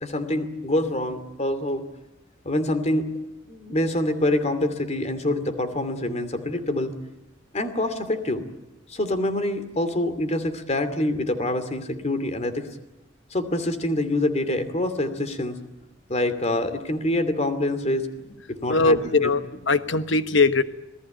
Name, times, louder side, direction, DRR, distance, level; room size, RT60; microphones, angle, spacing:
voice 1, 0.0-1.8 2.4-3.1 3.5-6.9 7.5-8.4 8.9-12.7 13.3-15.6 16.1-18.1 18.5-19.3, left 1 dB, 35° left, 10 dB, 2.6 m, -26 dB
voice 2, 18.7-20.6, left 3 dB, 75° left, 11 dB, 1.3 m, -20 dB
27.0 x 18.5 x 9.1 m, 0.98 s
head